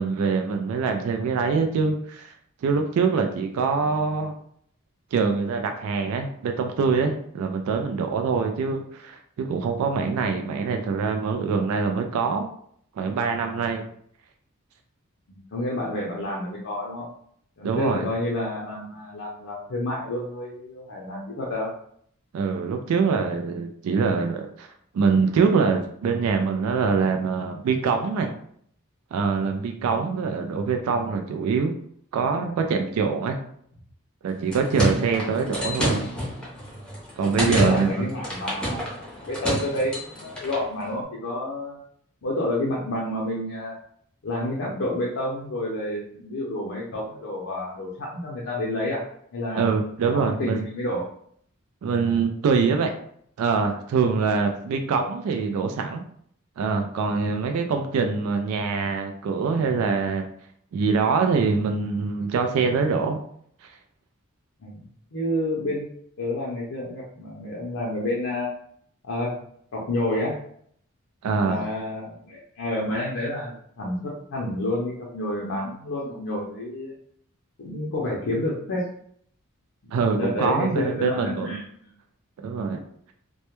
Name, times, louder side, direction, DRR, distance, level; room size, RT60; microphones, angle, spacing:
voice 1, 0.0-2.3 2.6-4.3 5.1-12.5 13.0-13.8 17.6-18.1 22.3-24.7 24.9-28.3 29.1-31.7 32.1-33.4 34.2-36.1 37.2-38.1 49.6-50.6 51.8-52.9 53.4-56.0 56.6-60.2 60.7-63.2 71.2-71.7 79.9-81.6 82.4-82.8, right 5 dB, 85° right, 9 dB, 0.3 m, -24 dB
voice 2, 15.3-17.1 17.6-21.7 29.8-30.0 34.9-35.0 37.4-38.8 39.3-41.8 42.2-43.7 44.2-49.0 49.3-49.8 50.1-51.1 64.6-64.8 65.1-65.9 66.2-68.5 69.0-69.3 69.7-70.4 71.4-76.9 77.6-78.8 79.8-81.7, left 1 dB, 65° left, -4 dB, 0.5 m, -29 dB
sound 1, 34.3-40.7, equal, 5° left, 0.6 m, -29 dB
2.1 x 2.1 x 2.9 m, 0.65 s
head